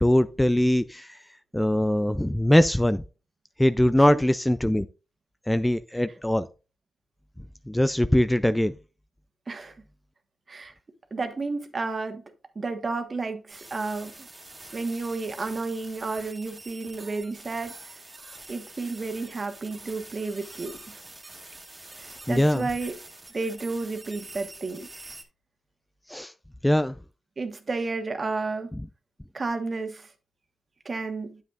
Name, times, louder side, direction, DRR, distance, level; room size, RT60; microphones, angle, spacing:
voice 1, 0.0-1.2 1.5-3.0 3.6-4.9 5.5-6.5 7.7-8.7 22.3-22.7 26.1-26.3 26.6-26.9, left 1 dB, 10° left, 0.4 m, -22 dB
voice 2, 11.1-12.2 12.5-14.3 14.7-18.0 18.5-21.0 22.3-23.0 23.3-24.9 27.4-28.7 29.3-30.1 30.8-31.4, right 3 dB, 45° right, 1.3 m, -32 dB
sound 1, 13.5-25.2, right 2 dB, 25° right, 1.8 m, -45 dB
9.4 x 7.4 x 2.4 m
cardioid pair, 60°, 0 cm